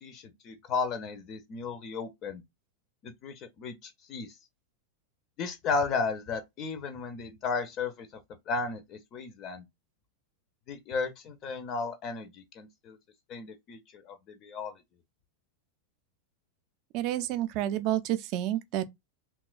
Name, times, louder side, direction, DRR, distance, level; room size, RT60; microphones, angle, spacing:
voice 1, 0.0-2.4 3.0-4.3 5.4-8.1 8.5-9.6 10.7-13.0 13.3-13.8 14.1-14.7, left 4 dB, 35° left, 0.4 m, -34 dB
voice 2, 16.9-18.9, right 13 dB, 40° right, 0.3 m, -29 dB
2.9 x 2.2 x 2.2 m
figure-of-eight pair, 90°, 0 cm